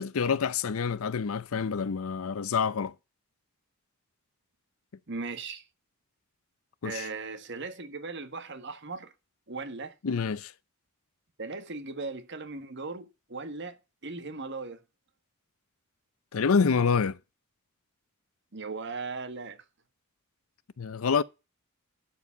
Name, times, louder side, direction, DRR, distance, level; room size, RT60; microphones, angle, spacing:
voice 1, 0.0-2.9 6.8-7.1 10.0-10.5 16.3-17.2 20.8-21.2, left 5 dB, 70° left, 0.5 m, -27 dB
voice 2, 5.1-5.6 6.8-9.1 9.5-9.9 11.4-14.8 18.5-19.6, right 3 dB, 50° right, 1.5 m, -38 dB
12.0 x 4.8 x 7.1 m
head